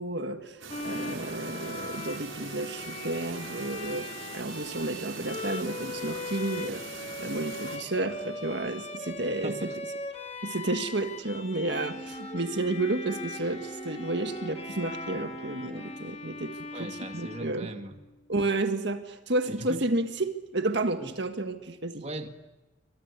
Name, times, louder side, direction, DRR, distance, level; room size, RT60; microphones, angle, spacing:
voice 1, 0.0-9.7 10.4-17.7 18.3-22.0, right 2 dB, 55° right, 7 dB, 1.7 m, -31 dB
Chirp tweet, 0.6-7.8, right 4 dB, 70° right, 5.0 m, -42 dB
Bowed string instrument, 0.7-18.1, left 2 dB, 30° left, 2.0 m, -40 dB
Wind instrument woodwind instrument, 11.6-16.1, right 1 dB, 5° left, 2.8 m, -44 dB
voice 2, 16.7-18.0 19.5-19.8 21.0-21.1 22.0-22.3, right 1 dB, 30° right, 6 dB, 1.9 m, -39 dB
28.5 x 25.0 x 8.3 m, 1.1 s
head